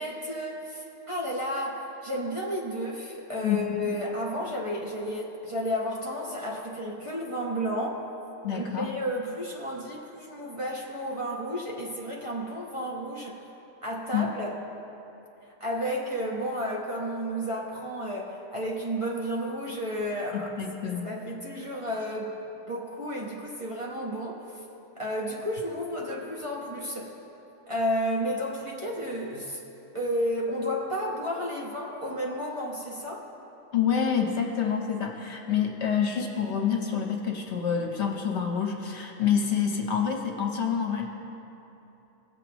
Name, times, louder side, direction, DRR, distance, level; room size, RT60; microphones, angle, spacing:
voice 1, 0.0-8.0 8.5-13.4 13.8-14.5 15.6-20.6 20.8-22.4 22.6-24.5 25.0-27.1 27.7-29.6 29.9-33.3, equal, 25° right, -4 dB, 1.1 m, -32 dB
voice 2, 3.4-3.9 8.4-8.9 14.1-14.3 20.3-21.1 33.7-41.1, left 7 dB, 60° left, 1 dB, 1.1 m, -27 dB
18.5 x 8.0 x 3.0 m, 3.0 s
omnidirectional pair, 1.4 m